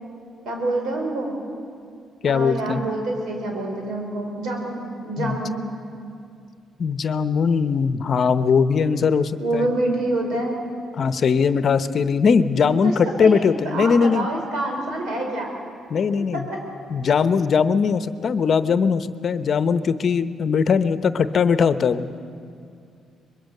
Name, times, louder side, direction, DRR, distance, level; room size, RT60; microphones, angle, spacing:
voice 1, 0.5-1.3 2.3-5.6 9.4-10.6 12.8-15.5 16.3-16.4, right 2 dB, 85° right, 1 dB, 5.2 m, -26 dB
voice 2, 2.2-2.8 5.2-5.4 6.8-9.7 11.0-14.3 15.9-16.5 16.9-22.1, left 6 dB, 55° left, 12 dB, 0.8 m, -20 dB
23.5 x 21.5 x 6.7 m, 2.3 s
cardioid pair, 90°, 0 cm